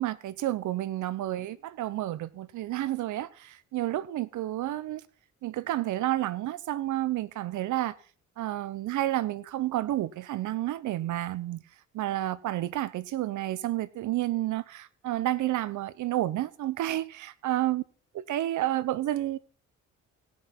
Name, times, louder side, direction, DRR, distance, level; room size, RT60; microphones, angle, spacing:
voice 1, 0.0-5.0 5.4-7.9 8.4-11.6 11.9-17.8 18.1-19.4, right 14 dB, 80° right, 0.9 m, -30 dB
17.5 x 6.4 x 5.8 m
cardioid pair, 90°, 30 cm